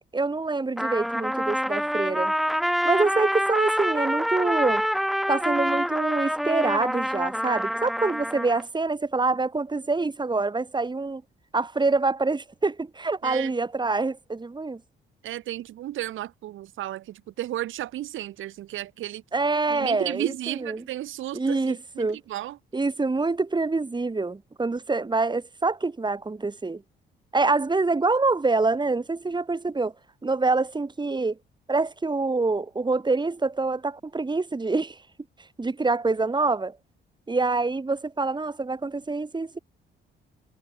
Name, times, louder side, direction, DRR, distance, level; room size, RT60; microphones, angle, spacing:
voice 1, 0.1-2.3 2.8-4.9 5.3-11.2 11.5-14.8 19.3-20.8 21.3-22.2 22.7-26.8 27.3-29.9 30.2-31.4 31.7-35.0 35.6-36.8 37.3-39.6, right 3 dB, 20° right, 5.1 m, -26 dB
Trumpet, 0.8-8.6, equal, ahead, 1.9 m, -26 dB
voice 2, 15.2-19.2 19.7-22.6, right 13 dB, 80° right, 4.0 m, -33 dB
cardioid pair, 90°, 20 cm